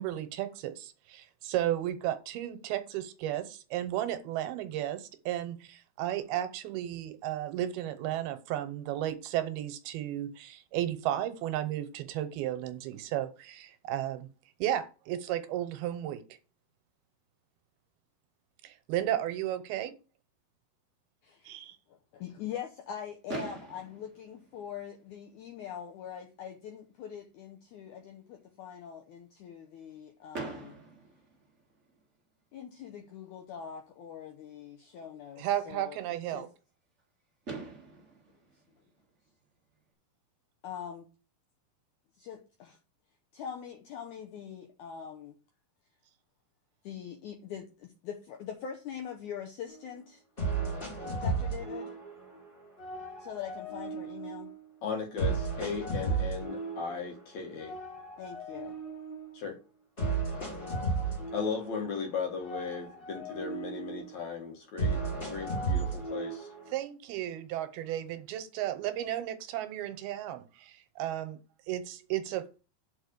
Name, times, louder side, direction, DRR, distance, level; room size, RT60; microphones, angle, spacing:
voice 1, 0.0-14.3 14.6-16.2 18.6-19.9 21.5-21.8 35.4-36.5 66.7-71.4 71.7-72.6, right 12 dB, 85° right, 2.7 m, -34 dB
voice 2, 21.2-21.6 21.9-30.8 32.5-36.0 36.3-36.5 40.6-41.1 42.2-42.8 43.3-45.4 46.8-50.2 51.2-51.9 53.2-54.5 55.1-55.3 58.2-58.8, left 8 dB, 75° left, 1.8 m, -43 dB
Fireworks, 23.3-25.3 26.1-26.2 26.4-26.6 26.9-27.0 30.3-32.2 33.9-34.0 37.0-37.1 37.4-39.7, right 3 dB, 40° right, 1.0 m, -44 dB
sound 1, 49.7-49.8 50.4-52.4 52.8-54.6 55.2-57.1 57.6-59.4 60.0-62.1 62.4-64.2 64.8-66.8, right 3 dB, 15° left, 2.2 m, -34 dB
voice 3, 54.8-57.8 59.3-59.6 61.3-66.5, left 5 dB, 60° left, 2.2 m, -36 dB
6.3 x 4.9 x 6.7 m
omnidirectional pair, 4.4 m